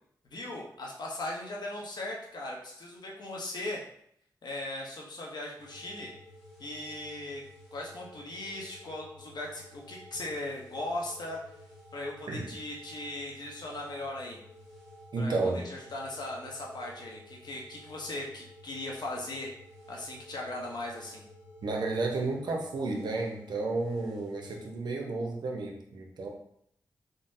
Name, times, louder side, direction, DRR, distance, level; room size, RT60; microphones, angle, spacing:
voice 1, 0.3-3.8 4.4-6.1 6.6-7.4 7.7-11.4 11.9-14.4 15.2-19.5 19.9-21.2, left 2 dB, 70° left, -1 dB, 0.8 m, -38 dB
sound 1, 5.6-24.7, left 1 dB, 5° right, 1.2 m, -52 dB
voice 2, 15.1-15.6 21.6-26.3, right 3 dB, 70° right, 1 dB, 0.6 m, -32 dB
3.7 x 2.0 x 2.6 m, 0.70 s
cardioid pair, 50°, 8 cm